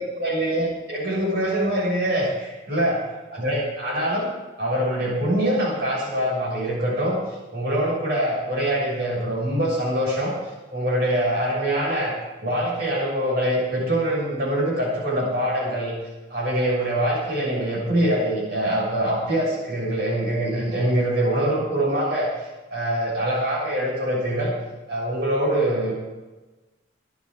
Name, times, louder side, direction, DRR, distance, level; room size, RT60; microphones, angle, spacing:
voice 1, 0.0-3.0 3.3-4.3 4.6-7.2 7.5-10.3 10.7-12.1 12.4-15.9 16.3-24.5 24.9-25.9, right 1 dB, 60° right, -4 dB, 6.4 m, -24 dB
23.0 x 11.5 x 3.7 m, 1.2 s
head